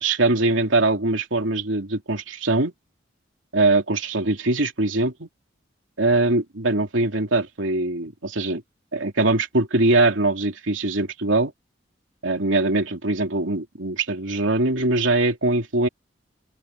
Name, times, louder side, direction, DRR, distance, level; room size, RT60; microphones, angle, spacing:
voice 1, 0.0-2.7 3.5-5.3 6.0-8.6 8.9-11.5 12.2-15.9, right 2 dB, 90° right, 3.0 m, -22 dB
open air
head